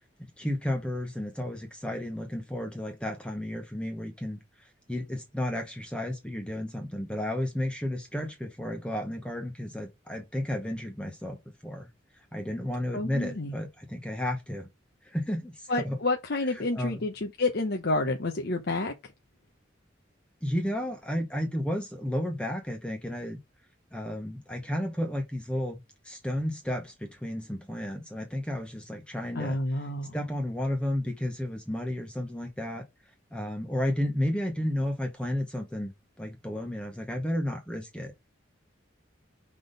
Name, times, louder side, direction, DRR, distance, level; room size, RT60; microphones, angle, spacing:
voice 1, 0.4-11.9 12.1-14.7 15.0-16.0 16.5-17.0 20.4-23.4 23.9-29.9 30.1-32.8 33.3-35.9 36.2-38.1, left 1 dB, 5° left, 0.9 m, -32 dB
voice 2, 12.9-13.5 15.7-18.9 29.3-30.2, left 2 dB, 55° left, 0.8 m, -29 dB
6.0 x 3.6 x 5.1 m
head